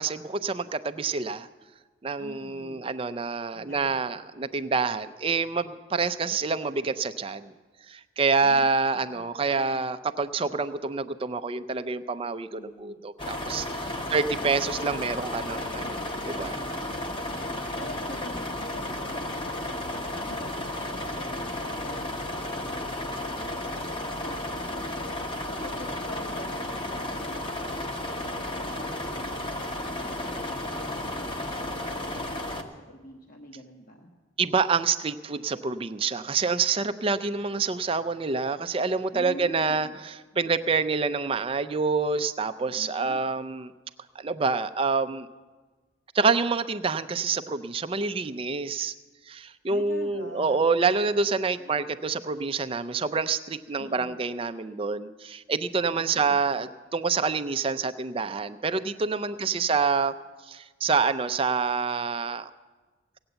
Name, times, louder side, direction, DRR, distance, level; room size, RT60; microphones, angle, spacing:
voice 1, 0.0-1.5 2.0-7.5 7.9-16.6 34.4-43.7 44.2-45.3 46.1-48.9 49.3-60.1 60.5-62.5, right 4 dB, 25° right, 10 dB, 0.4 m, -27 dB
voice 2, 2.2-2.8 3.5-4.2 8.4-9.9 12.5-13.0 13.8-14.3 16.9-34.1 39.1-40.0 40.3-40.5 42.7-43.2 49.7-50.9 51.6-51.9 53.8-54.2 55.7-56.7 59.3-59.8, left 1 dB, 45° left, 1 dB, 1.1 m, -46 dB
sound 1, 13.2-32.6, left 1 dB, 25° left, 0.9 m, -33 dB
17.0 x 8.7 x 8.0 m, 1.3 s
head